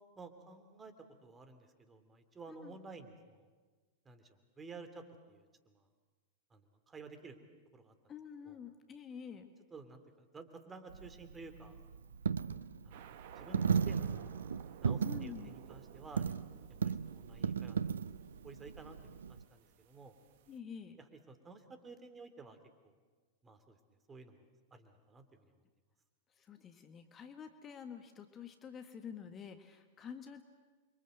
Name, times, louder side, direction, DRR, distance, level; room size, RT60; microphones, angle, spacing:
voice 1, 0.2-0.9 1.2-3.5 4.0-5.8 6.5-7.4 7.7-7.9 8.5-8.6 9.7-12.1 12.8-13.0 13.4-14.5 14.8-16.3 16.8-17.8 18.4-20.1 21.1-22.6 22.8-22.9 23.4-23.8 24.1-24.4 24.7-25.2, right 4 dB, 20° right, 9 dB, 2.9 m, -53 dB
voice 2, 8.1-9.5 15.0-15.5 20.5-21.0 26.4-30.4, left 7 dB, 25° left, 7 dB, 1.6 m, -48 dB
Coin (dropping), 10.9-19.4, right 6 dB, 75° right, 0.8 m, -36 dB
sound 1, 12.9-20.6, right 10 dB, 55° right, 1.6 m, -56 dB
29.0 x 24.0 x 7.9 m, 1.4 s
figure-of-eight pair, 95°, 0 cm